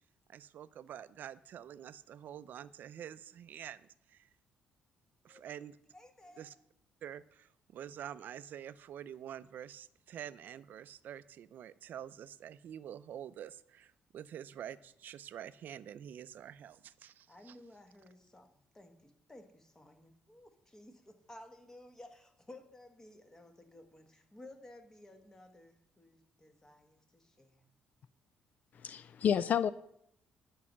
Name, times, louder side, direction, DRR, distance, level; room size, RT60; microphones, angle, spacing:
voice 1, 0.3-4.3 5.2-5.8 6.4-6.5 7.0-17.6, right 10 dB, 60° right, 16 dB, 0.5 m, -47 dB
voice 2, 5.9-6.6 17.3-27.6, left 1 dB, 15° left, 6 dB, 1.4 m, -56 dB
voice 3, 28.7-29.7, left 8 dB, 50° left, 16 dB, 0.3 m, -30 dB
11.0 x 5.5 x 7.3 m, 0.72 s
cardioid pair, 135°, 4 cm